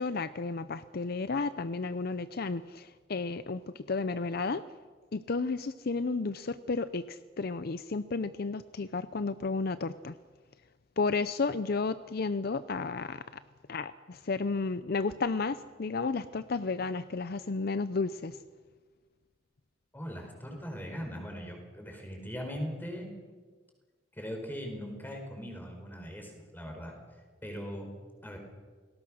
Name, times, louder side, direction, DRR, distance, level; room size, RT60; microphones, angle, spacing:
voice 1, 0.0-4.6 5.1-10.1 11.0-13.4 13.7-18.4, left 4 dB, 55° left, 13 dB, 0.6 m, -32 dB
voice 2, 19.9-23.1 24.2-26.9 27.4-28.0 28.2-28.4, equal, 10° left, 3 dB, 4.7 m, -40 dB
29.0 x 19.0 x 6.4 m, 1.4 s
head